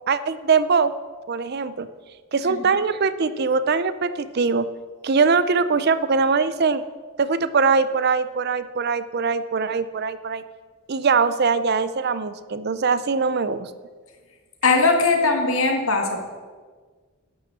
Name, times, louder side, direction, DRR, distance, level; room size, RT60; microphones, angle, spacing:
voice 1, 0.1-0.9 1.3-1.9 2.3-4.7 5.0-6.8 7.2-10.4 10.9-13.7, right 5 dB, 45° right, 14 dB, 0.5 m, -22 dB
voice 2, 14.6-16.2, left 3 dB, 70° left, 4 dB, 1.7 m, -19 dB
12.0 x 6.3 x 7.4 m, 1.5 s
head